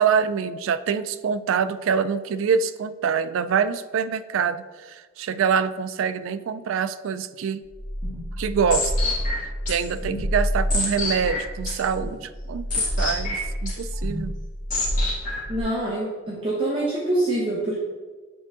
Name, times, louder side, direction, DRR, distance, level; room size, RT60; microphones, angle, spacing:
voice 1, 0.0-7.6 8.4-8.9 9.7-14.4, right 6 dB, 70° right, 13 dB, 0.3 m, -25 dB
sound 1, 7.7-15.6, left 1 dB, 40° left, 1.6 m, -27 dB
voice 2, 15.5-17.8, right 1 dB, 25° right, -6 dB, 0.8 m, -25 dB
7.9 x 3.6 x 3.6 m, 1.4 s
head